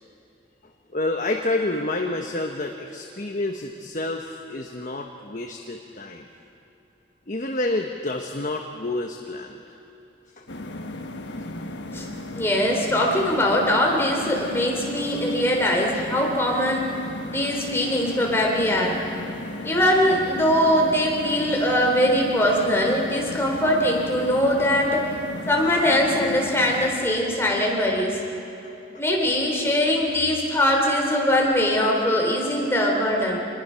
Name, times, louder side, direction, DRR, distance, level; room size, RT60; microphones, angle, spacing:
voice 1, 0.9-6.2 7.3-9.8 10.4-10.5, left 2 dB, 45° left, 3 dB, 1.1 m, -29 dB
sound 1, 10.5-26.9, left 1 dB, 80° left, 1.4 m, -35 dB
voice 2, 12.4-16.8 17.3-19.0 19.6-25.0 25.5-28.2 29.0-33.4, left 1 dB, 15° left, -1 dB, 3.3 m, -21 dB
27.0 x 20.5 x 5.8 m, 3.0 s
head